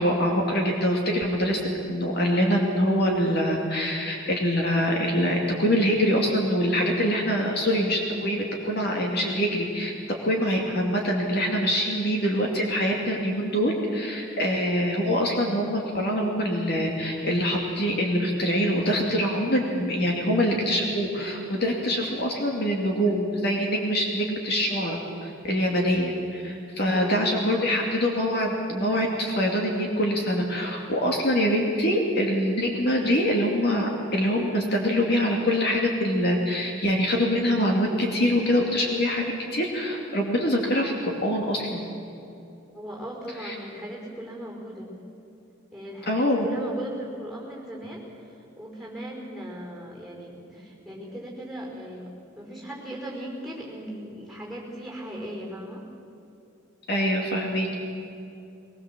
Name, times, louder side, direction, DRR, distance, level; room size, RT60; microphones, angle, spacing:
voice 1, 0.0-9.9 10.2-39.2 39.5-41.8 43.4-43.6 46.1-46.5 56.9-57.7, equal, 50° left, 0 dB, 2.5 m, -24 dB
voice 2, 26.7-27.4 42.7-44.9 45.7-52.1 52.3-55.8, right 1 dB, ahead, -3 dB, 4.9 m, -38 dB
22.0 x 20.0 x 7.6 m, 2.7 s
head